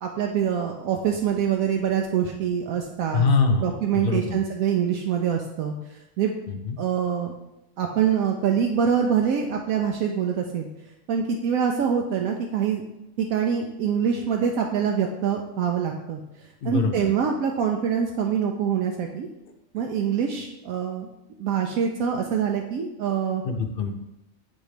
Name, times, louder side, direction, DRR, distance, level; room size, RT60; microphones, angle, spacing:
voice 1, 0.0-3.2 3.6-5.7 6.2-6.3 6.8-7.3 7.8-10.7 11.1-12.8 13.2-16.2 16.6-19.3 19.7-21.1 21.4-23.4, right 7 dB, 80° right, 2 dB, 1.0 m, -25 dB
voice 2, 3.1-4.4 6.5-6.8 16.6-17.1 19.8-19.9 23.4-23.9, left 4 dB, 50° left, 5 dB, 0.8 m, -24 dB
8.6 x 3.1 x 4.9 m, 0.91 s
omnidirectional pair, 1.4 m